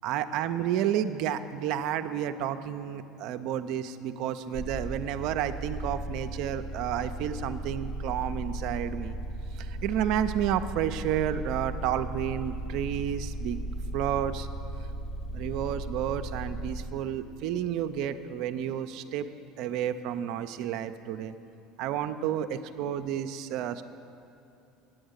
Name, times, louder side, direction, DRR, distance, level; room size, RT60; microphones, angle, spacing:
voice 1, 0.0-9.2 9.6-13.6 13.9-14.5 15.3-19.3 19.6-21.4 21.8-23.8, right 10 dB, 65° right, 9 dB, 0.4 m, -31 dB
sound 1, 4.5-16.8, right 1 dB, 50° left, 1.4 m, -36 dB
8.9 x 7.9 x 6.4 m, 2.8 s
hypercardioid pair, 85°, 0 cm